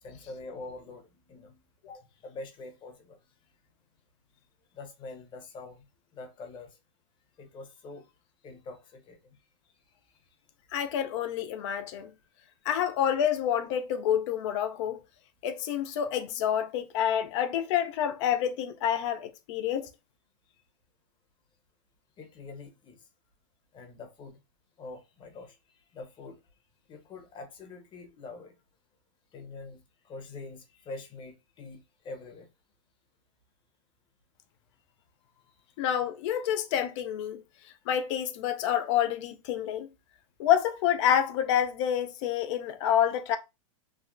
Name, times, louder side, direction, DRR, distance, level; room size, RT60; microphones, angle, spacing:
voice 1, 0.0-1.6 1.8-3.2 4.7-5.8 6.1-6.8 7.4-8.1 8.4-9.4 22.2-23.1 23.7-24.4 24.8-25.6 25.9-26.4 26.9-28.6 29.3-32.5, left 3 dB, 30° left, 0.9 m, -45 dB
voice 2, 10.7-12.1 12.7-15.0 15.4-19.9 35.8-37.4 37.9-39.9 40.4-43.4, left 9 dB, 60° left, 0.5 m, -28 dB
3.4 x 2.1 x 2.5 m
hypercardioid pair, 120°, 17 cm